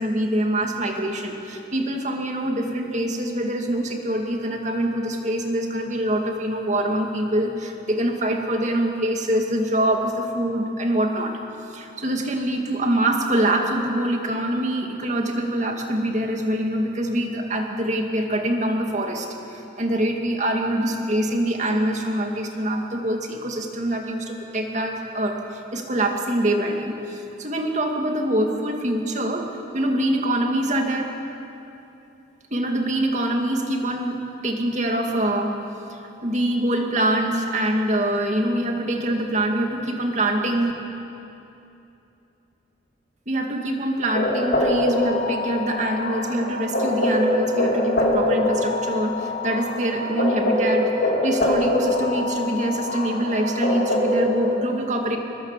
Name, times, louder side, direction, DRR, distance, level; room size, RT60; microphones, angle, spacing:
voice 1, 0.0-11.4 11.7-31.1 32.5-35.6 35.9-40.7 43.3-55.2, right 1 dB, 35° right, 2 dB, 2.4 m, -24 dB
sound 1, 44.1-54.5, left 1 dB, 50° left, 4.1 m, -23 dB
24.5 x 21.0 x 7.6 m, 2.9 s
head